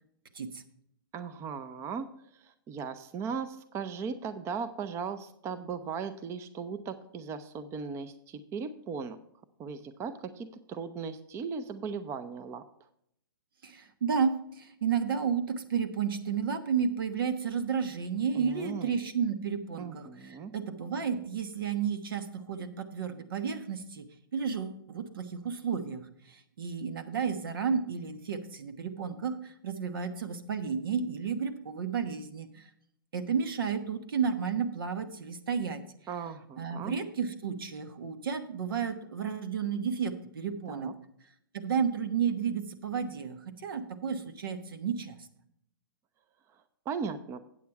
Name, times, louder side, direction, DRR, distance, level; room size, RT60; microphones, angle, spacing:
voice 1, 1.1-2.1 2.3-9.2 9.6-12.6 18.3-19.0 19.8-20.5 36.1-36.9 40.7-40.9 46.9-47.4, right 5 dB, 25° right, 11 dB, 0.6 m, -37 dB
voice 2, 13.6-24.1 24.3-32.7 33.1-35.8 36.6-40.9 41.5-45.2, right 6 dB, 75° right, 10 dB, 1.2 m, -32 dB
8.5 x 8.4 x 4.6 m, 0.71 s
hypercardioid pair, 130°, 12 cm